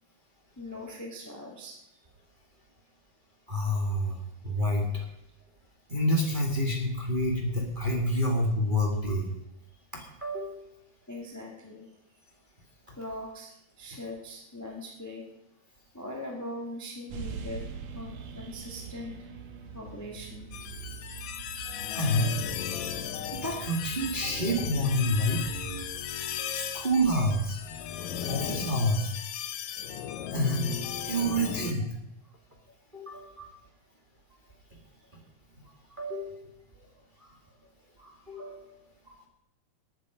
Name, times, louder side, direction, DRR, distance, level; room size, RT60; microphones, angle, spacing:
voice 1, 0.5-1.7 5.0-5.1 7.5-7.6 8.1-8.2 8.7-9.1 11.1-11.9 12.9-15.2 15.9-17.6 17.9-19.1 19.7-20.7 24.2-24.4 25.3-25.4 26.5-26.6 28.4-28.5 31.3-31.8 32.7-32.8 33.4-33.5 35.0-35.1 35.6-36.1 36.7-36.9 37.2-37.5 38.0-39.2, left 1 dB, 10° left, -1 dB, 1.2 m, -42 dB
voice 2, 3.5-4.9 5.9-9.3 9.9-10.6 12.9-13.0 21.9-22.3 23.3-25.4 26.5-27.6 28.2-29.1 30.3-30.7 31.0-31.8 32.9-33.3 36.0-36.4 38.3-38.5, equal, 20° right, -1 dB, 1.7 m, -28 dB
sound 1, 17.1-25.9, right 6 dB, 70° right, 2.7 m, -42 dB
sound 2, 20.5-31.7, left 10 dB, 75° left, 2.5 m, -36 dB
18.5 x 9.4 x 5.2 m, 0.81 s
omnidirectional pair, 4.0 m